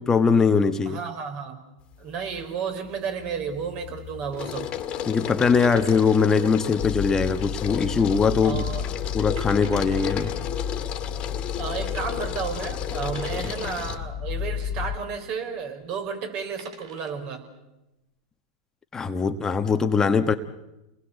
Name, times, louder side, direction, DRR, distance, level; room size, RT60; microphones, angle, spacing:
voice 1, 0.0-1.0 5.1-8.6 9.1-10.3 18.9-20.3, left 5 dB, 20° left, 7 dB, 1.3 m, -21 dB
voice 2, 0.9-1.6 2.0-4.7 8.4-8.9 11.6-17.4, right 6 dB, 45° right, 5 dB, 5.3 m, -32 dB
sound 1, 1.9-2.5 2.8-14.0, left 9 dB, 35° left, 2.1 m, -34 dB
sound 2, 5.6-6.6 6.8-6.9 7.6-8.0 8.3-8.4 9.0-9.1 9.4-10.3 11.4-11.5 12.2-12.3 13.2-14.0 15.8-16.0 16.4-17.3, right 5 dB, 80° right, 3.4 m, -47 dB
sound 3, 6.8-15.0, left 8 dB, 50° left, 1.2 m, -32 dB
29.0 x 20.5 x 8.3 m, 0.95 s
hypercardioid pair, 110°, 3 cm